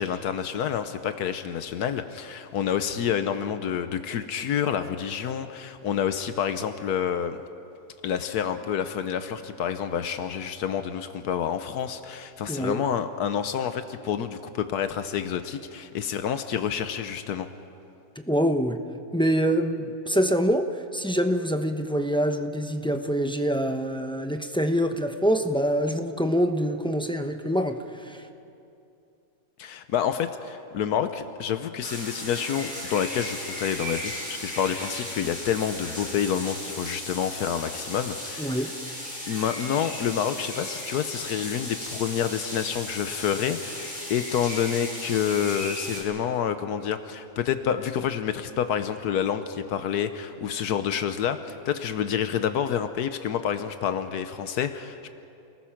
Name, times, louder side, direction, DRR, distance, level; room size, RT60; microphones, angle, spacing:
voice 1, 0.0-7.4 8.0-17.5 29.6-38.7 39.3-55.1, left 8 dB, 80° left, 10 dB, 1.3 m, -28 dB
voice 2, 12.5-12.8 18.3-18.8 19.1-20.7 20.9-28.2 38.4-38.7, equal, 5° left, 5 dB, 0.6 m, -25 dB
sound 1, 31.8-46.0, left 1 dB, 25° left, 5.5 m, -36 dB
29.0 x 19.5 x 5.9 m, 2.7 s
omnidirectional pair, 1.6 m